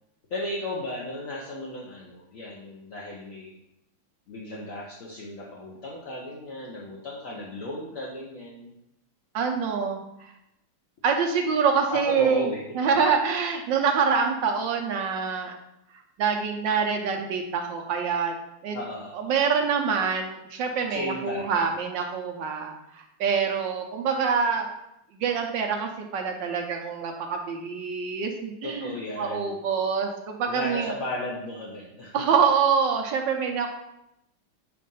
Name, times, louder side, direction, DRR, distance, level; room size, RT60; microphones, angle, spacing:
voice 1, 0.3-3.5 4.3-8.7 11.9-12.6 18.7-19.2 20.9-21.6 28.6-29.6 30.5-32.1, left 1 dB, 55° left, -4 dB, 1.0 m, -35 dB
voice 2, 9.3-10.3 11.0-12.5 12.8-15.5 16.2-18.3 18.6-18.8 19.1-24.7 25.2-30.9 32.1-33.7, right 6 dB, 70° right, 3 dB, 1.2 m, -25 dB
7.3 x 2.5 x 5.4 m, 0.84 s
omnidirectional pair, 2.4 m